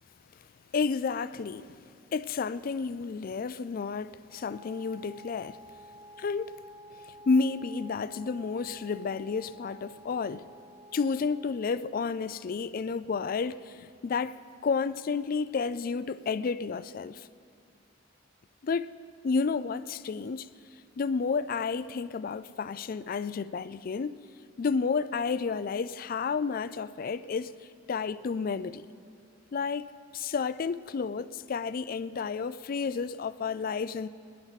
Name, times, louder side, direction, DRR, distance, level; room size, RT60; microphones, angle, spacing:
voice 1, 0.7-1.7 2.1-5.6 6.2-6.6 7.0-10.5 10.9-17.3 18.6-18.9 19.2-20.6 21.0-24.2 24.6-27.5 27.9-28.9 29.5-34.1, left 5 dB, 45° left, 0.3 m, -31 dB
Wind instrument woodwind instrument, 4.3-11.7, equal, 30° right, 1.4 m, -51 dB
25.0 x 10.5 x 4.1 m
head